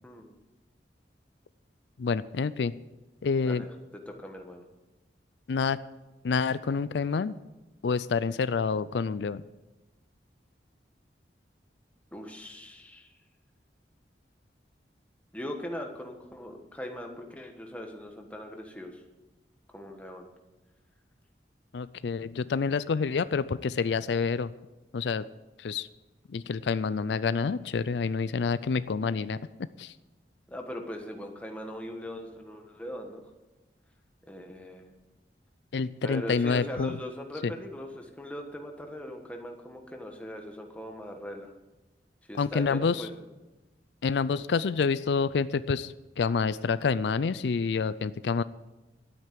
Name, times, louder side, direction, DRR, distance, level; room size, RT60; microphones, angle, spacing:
voice 1, 0.0-0.3 3.4-3.7 4.1-4.6 12.1-13.1 15.3-19.0 19.7-20.3 30.5-33.2 34.3-34.9 36.0-41.5 42.3-43.1, equal, 10° left, 3 dB, 1.4 m, -40 dB
voice 2, 2.0-2.7 3.2-3.6 5.5-5.8 6.2-7.4 7.8-9.4 21.7-24.5 24.9-25.2 25.6-25.9 26.3-29.4 29.8-30.0 35.7-37.0 37.4-37.5 42.4-43.1 44.0-48.4, left 5 dB, 80° left, 16 dB, 0.4 m, -28 dB
12.5 x 8.9 x 7.7 m, 1.1 s
head